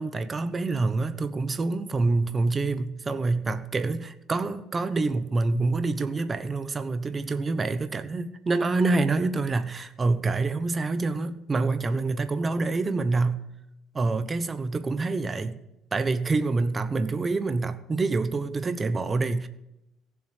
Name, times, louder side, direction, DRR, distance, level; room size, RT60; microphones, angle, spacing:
voice 1, 0.0-13.4 13.9-15.6 15.9-19.5, right 3 dB, 25° right, 0.9 m, -26 dB
15.5 x 7.4 x 8.4 m
cardioid pair, 125°, 0 cm